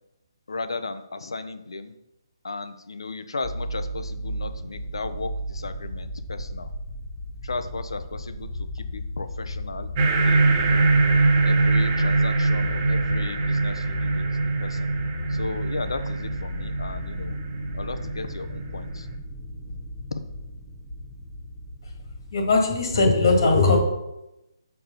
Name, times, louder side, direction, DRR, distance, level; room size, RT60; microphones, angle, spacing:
voice 1, 0.5-1.9 2.4-6.7 7.4-9.9 10.2-10.9 11.5-14.3 14.6-14.9 15.3-17.3 17.7-19.1 20.1-20.2, left 3 dB, 90° left, 9 dB, 0.7 m, -35 dB
sound 1, 3.4-23.2, left 1 dB, 5° left, 1.0 m, -34 dB
sound 2, 10.0-18.9, right 3 dB, 30° right, 1.0 m, -23 dB
voice 2, 22.3-23.8, left 3 dB, 60° left, 2 dB, 2.1 m, -19 dB
6.4 x 4.6 x 5.5 m, 0.92 s
hypercardioid pair, 160°, 3 cm